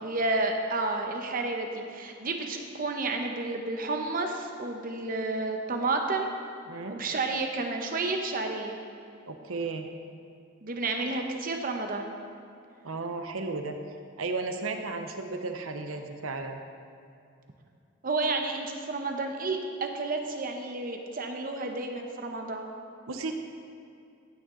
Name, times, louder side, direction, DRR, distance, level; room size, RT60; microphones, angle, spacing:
voice 1, 0.0-6.3 6.9-8.8 10.6-12.1 18.0-22.7, right 3 dB, 45° right, 4 dB, 0.8 m, -31 dB
voice 2, 9.3-9.9 12.8-13.8 14.2-16.6 23.1-23.3, right 3 dB, 90° right, 6 dB, 0.8 m, -34 dB
15.5 x 9.2 x 3.8 m, 2.5 s
head